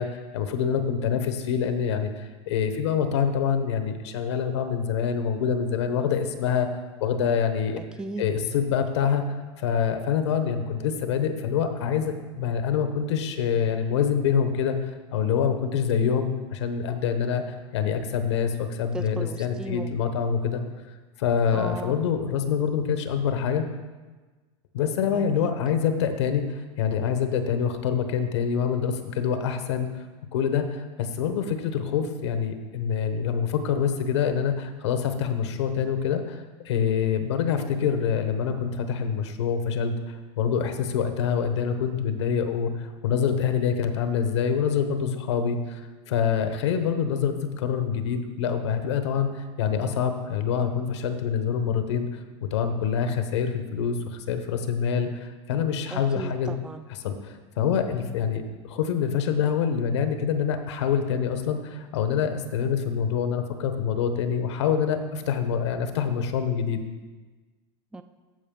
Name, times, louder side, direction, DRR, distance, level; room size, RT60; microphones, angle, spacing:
voice 1, 0.0-6.7 7.0-7.8 8.2-9.2 9.6-14.8 15.1-17.4 17.7-20.6 21.2-23.7 24.7-26.4 26.8-29.9 30.3-45.8 46.1-52.1 52.4-56.5 56.9-66.8, left 7 dB, 85° left, 8 dB, 1.0 m, -26 dB
voice 2, 7.8-8.3 18.9-19.9 21.5-22.0 25.1-25.5 55.9-56.9 67.9-68.0, right 3 dB, 5° right, 10 dB, 0.4 m, -36 dB
14.0 x 5.1 x 3.8 m, 1.3 s
supercardioid pair, 120°, 14 cm